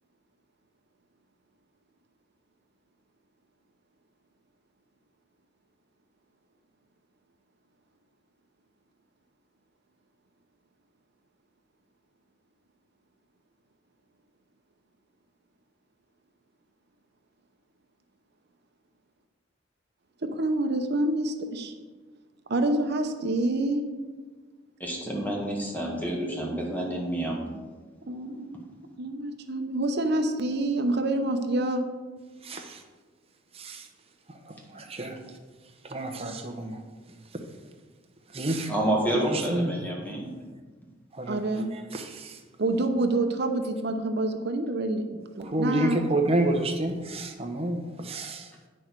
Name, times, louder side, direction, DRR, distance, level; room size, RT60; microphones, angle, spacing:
voice 1, 20.2-21.7 22.5-23.8 28.1-28.6 29.0-31.9 41.3-41.7 42.6-45.1 45.3-46.0, right 2 dB, 60° right, 6 dB, 0.8 m, -27 dB
voice 2, 24.8-27.4 38.7-40.3, right 1 dB, 10° left, -2 dB, 1.6 m, -29 dB
voice 3, 32.4-32.8 33.6-33.8 34.5-35.2 35.9-36.8 38.3-38.7 39.1-39.7 41.1-41.4 41.9-42.4 45.4-48.5, right 1 dB, 30° right, 4 dB, 0.9 m, -29 dB
9.0 x 6.3 x 4.7 m, 1.4 s
head